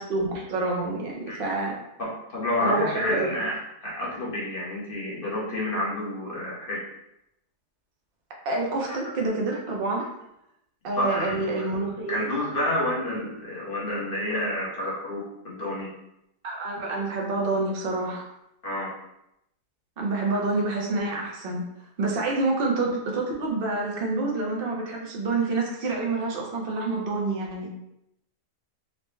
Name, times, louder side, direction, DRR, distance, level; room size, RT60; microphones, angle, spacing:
voice 1, 0.0-1.8 2.6-3.3 8.4-10.0 10.8-12.3 16.4-18.2 20.0-21.6 22.0-27.7, right 3 dB, 50° right, -1 dB, 0.7 m, -27 dB
voice 2, 2.0-6.8 8.8-9.0 11.0-11.7 12.1-15.9 18.6-18.9, left 1 dB, 40° left, -5 dB, 1.0 m, -29 dB
4.0 x 2.2 x 3.2 m, 0.82 s
omnidirectional pair, 1.8 m